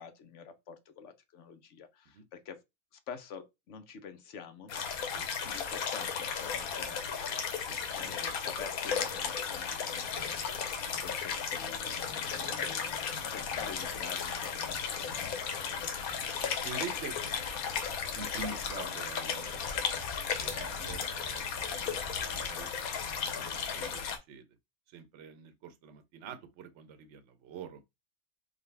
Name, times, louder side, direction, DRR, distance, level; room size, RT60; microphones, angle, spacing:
voice 1, 0.0-2.6 3.1-4.7 5.4-7.0 7.9-15.9, left 6 dB, 60° left, 1.0 m, -48 dB
sound 1, 4.7-24.2, left 6 dB, 80° left, 1.2 m, -35 dB
voice 2, 7.6-8.2 10.1-10.3 15.8-16.0 16.6-17.2 18.1-19.8 20.3-22.7 23.2-24.5 24.9-27.8, right 5 dB, 60° right, 1.0 m, -46 dB
5.2 x 2.3 x 3.3 m
omnidirectional pair, 1.5 m